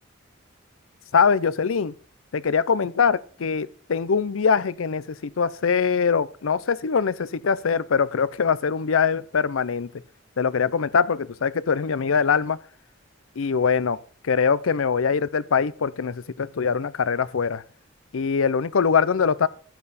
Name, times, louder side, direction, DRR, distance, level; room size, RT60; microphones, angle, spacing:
voice 1, 1.1-1.9 2.3-9.9 10.4-12.6 13.4-14.0 14.2-17.6 18.1-19.5, left 6 dB, 90° left, 0.5 m, -23 dB
12.5 x 8.7 x 4.2 m
head